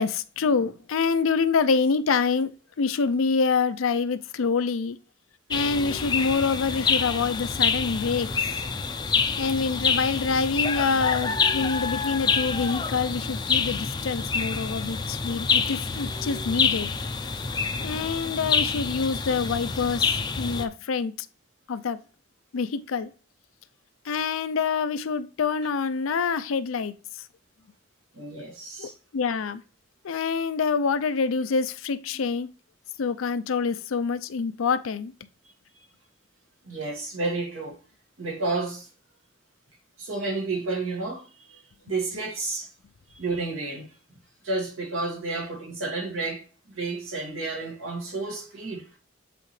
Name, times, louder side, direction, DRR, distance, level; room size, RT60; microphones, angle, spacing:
voice 1, 0.0-2.5 2.8-5.0 5.5-8.5 9.4-16.9 17.8-21.1 21.7-22.0 22.5-23.1 24.0-27.2 28.8-29.6 30.0-32.5 33.0-35.1, left 5 dB, 90° left, 0.5 m, -26 dB
sound 1, 5.5-20.7, left 5 dB, 20° left, 0.4 m, -27 dB
voice 2, 28.1-28.9 36.6-37.8 38.2-38.9 40.0-42.7 43.1-43.9 44.4-48.9, right 3 dB, 85° right, 2.2 m, -31 dB
7.7 x 3.8 x 3.2 m
head